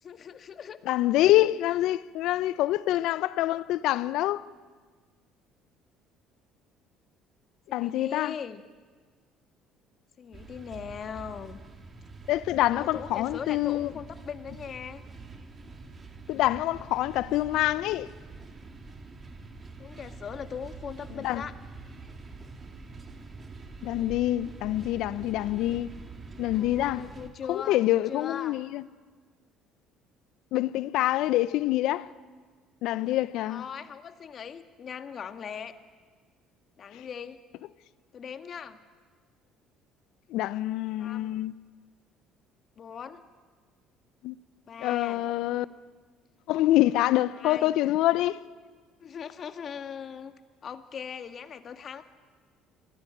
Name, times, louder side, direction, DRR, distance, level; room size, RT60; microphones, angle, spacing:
voice 1, 0.0-0.8 7.7-8.6 10.2-11.6 12.7-15.0 19.8-21.5 26.6-28.6 33.5-35.8 36.8-37.4 38.1-38.8 40.9-41.4 42.8-43.2 44.7-45.2 47.3-47.8 49.0-50.3 50.6-52.0, left 7 dB, 50° left, 1.7 m, -40 dB
voice 2, 0.9-4.4 7.7-8.3 12.3-13.9 16.3-18.1 21.2-21.4 23.8-25.9 26.4-27.1 27.5-28.8 30.5-32.1 32.8-33.6 40.3-41.5 44.2-44.3 44.8-45.7 46.5-48.4, left 15 dB, 70° left, 0.7 m, -26 dB
sound 1, 10.3-27.3, right 3 dB, 35° right, 2.7 m, -45 dB
24.0 x 16.5 x 10.0 m
supercardioid pair, 75°, 0 cm